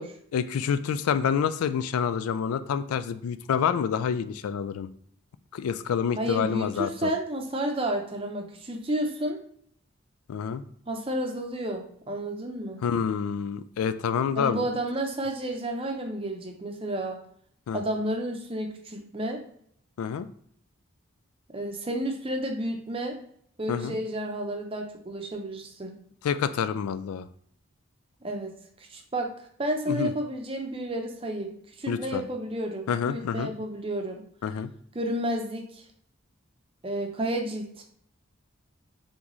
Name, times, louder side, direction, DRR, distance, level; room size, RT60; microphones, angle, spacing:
voice 1, 0.3-4.9 5.5-7.1 10.3-10.6 12.8-14.6 17.7-17.8 20.0-20.3 23.7-24.0 26.2-27.3 29.9-30.1 31.9-32.2 32.9-33.5 34.4-34.7, left 7 dB, 90° left, 12 dB, 0.3 m, -27 dB
voice 2, 6.2-9.4 10.9-12.8 14.4-17.2 17.7-19.4 21.5-23.2 23.6-26.0 28.2-28.5 28.8-29.3 29.6-34.2 34.9-35.8 36.8-37.8, right 1 dB, 25° right, 3 dB, 0.6 m, -31 dB
4.0 x 3.5 x 3.0 m, 0.64 s
head